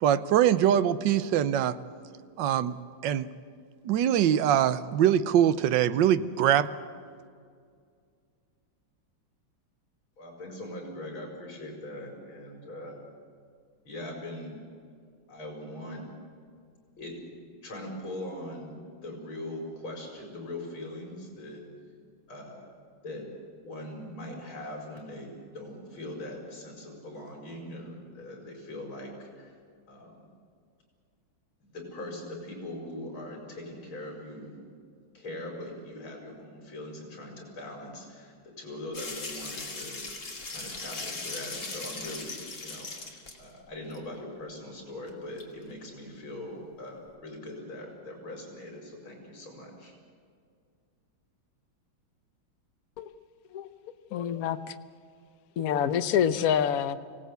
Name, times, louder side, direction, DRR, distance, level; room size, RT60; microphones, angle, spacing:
voice 1, 0.0-1.8 2.4-2.7 3.0-3.3 3.8-6.7, right 10 dB, 70° right, 13 dB, 1.3 m, -23 dB
voice 2, 10.2-13.1 13.9-14.6 15.3-16.1 17.0-17.2 17.6-21.6 22.3-22.7 23.0-23.3 23.6-29.6 29.9-30.3 31.6-34.6 35.1-40.1 40.5-49.9, left 1 dB, 70° left, 1 dB, 5.6 m, -41 dB
sound 1, 38.9-43.4 43.9-44.0 45.1-45.2 45.4-45.5, left 3 dB, 35° left, 2.7 m, -38 dB
voice 3, 53.5-54.8 55.6-57.0, left 9 dB, 55° left, 10 dB, 1.0 m, -27 dB
25.0 x 17.5 x 8.2 m, 2.2 s
omnidirectional pair, 2.3 m